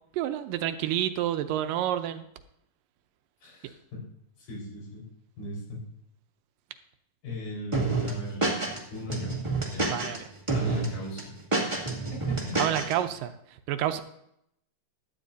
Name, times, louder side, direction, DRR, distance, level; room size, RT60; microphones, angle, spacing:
voice 1, 0.1-2.3 9.9-10.2 12.6-13.3 13.7-14.0, right 11 dB, 80° right, 9 dB, 2.2 m, -28 dB
voice 2, 3.4-4.0 4.4-5.1 5.4-5.8 7.2-8.5 8.9-9.3 9.7-9.9 10.5-11.7 12.4-12.6, left 1 dB, 70° left, -4 dB, 6.1 m, -38 dB
sound 1, 7.7-8.8 9.1-10.2 10.5-10.9 11.2-12.9, right 3 dB, 15° right, 1.1 m, -28 dB
16.5 x 12.0 x 2.7 m, 0.75 s
omnidirectional pair, 4.2 m